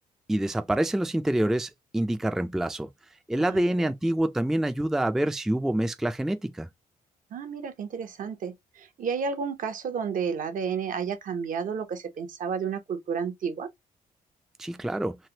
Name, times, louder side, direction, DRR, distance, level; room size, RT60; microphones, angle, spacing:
voice 1, 0.3-2.9 3.3-6.7 14.6-15.2, right 1 dB, 5° right, 0.4 m, -26 dB
voice 2, 3.4-3.9 7.3-13.7, right 6 dB, 60° right, 0.8 m, -32 dB
3.3 x 2.5 x 2.8 m
cardioid pair, 85°, 15 cm